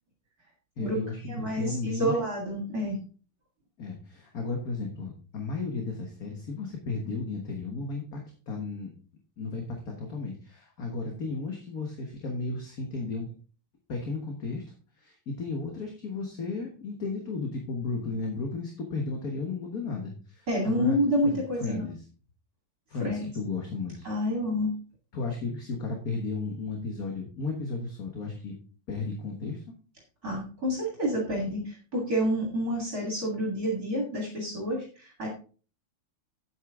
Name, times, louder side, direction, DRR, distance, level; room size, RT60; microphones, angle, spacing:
voice 1, 0.8-2.2 3.8-8.9 9.4-13.3 13.9-14.6 15.0-21.0 21.2-22.0 22.9-24.1 25.1-28.6 28.9-29.6, left 3 dB, 50° left, 2 dB, 1.8 m, -34 dB
voice 2, 1.3-3.0 20.5-21.8 23.0-23.2 24.0-24.8 30.2-35.3, equal, 50° right, -1 dB, 2.8 m, -28 dB
9.6 x 8.3 x 3.7 m, 0.38 s
omnidirectional pair, 2.1 m